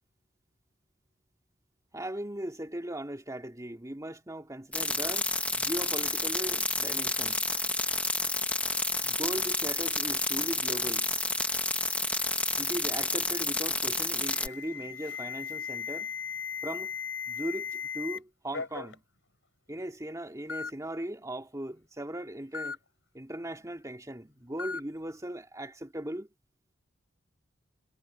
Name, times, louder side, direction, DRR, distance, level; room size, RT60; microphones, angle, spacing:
voice 1, 1.9-7.4 9.0-11.1 12.6-16.1 16.6-16.9 17.3-19.0 19.7-22.8 23.1-26.3, right 1 dB, 15° right, 2.5 m, -38 dB
sound 1, 4.7-14.5, left 2 dB, 5° left, 1.1 m, -30 dB
Alarm, 14.2-18.2 18.5-18.9 19.8-19.9 20.5-20.7 22.5-22.8 24.6-24.8, left 6 dB, 75° left, 5.7 m, -37 dB
head